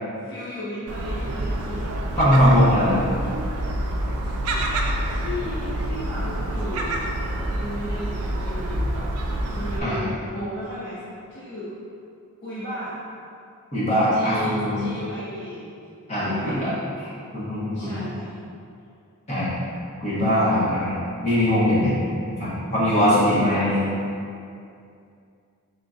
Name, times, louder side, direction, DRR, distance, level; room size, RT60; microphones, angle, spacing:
voice 1, 0.1-2.3 5.1-7.1 7.5-9.1 9.5-11.0 11.3-11.8 12.4-13.0 14.1-15.7 16.2-16.6 17.7-18.3 22.9-23.6, equal, 50° left, -11 dB, 0.8 m, -35 dB
Gull seagull, 0.9-9.8, right 1 dB, 75° right, 0.4 m, -27 dB
voice 2, 2.2-3.0 9.8-10.0 13.7-14.8 16.1-16.7 17.0-18.0 19.3-19.5 20.0-21.9 22.3-23.8, equal, 30° left, -9 dB, 1.1 m, -21 dB
3.8 x 3.7 x 2.4 m, 2.5 s
head